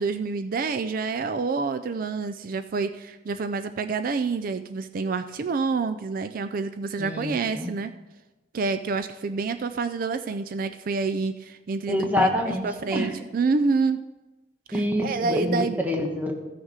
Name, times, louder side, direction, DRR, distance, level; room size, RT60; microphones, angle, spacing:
voice 1, 0.0-7.9 8.5-12.3 12.6-14.0 14.7-15.8, right 4 dB, 55° right, 10 dB, 0.4 m, -28 dB
voice 2, 7.0-7.7 11.9-12.6 12.9-13.1 14.7-16.4, left 1 dB, 10° right, 1 dB, 1.3 m, -26 dB
14.5 x 6.4 x 4.8 m, 1.1 s
head